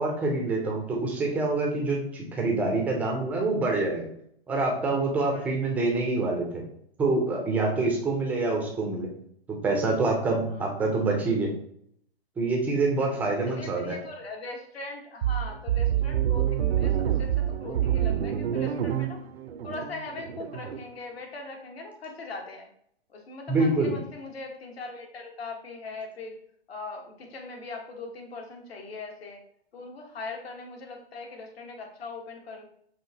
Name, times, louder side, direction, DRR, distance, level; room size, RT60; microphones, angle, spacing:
voice 1, 0.0-4.1 4.5-6.6 7.0-9.1 9.6-11.5 12.4-14.0 23.5-23.9, right 3 dB, 5° right, 0 dB, 0.3 m, -26 dB
voice 2, 5.2-5.6 10.5-10.6 13.5-19.2 19.6-22.7 23.1-26.4 26.7-29.4 29.7-32.6, left 3 dB, 75° left, 2 dB, 1.3 m, -40 dB
sound 1, 15.2-20.8, right 10 dB, 80° right, 0.5 m, -27 dB
5.7 x 2.5 x 2.7 m, 0.68 s
hypercardioid pair, 130°, 31 cm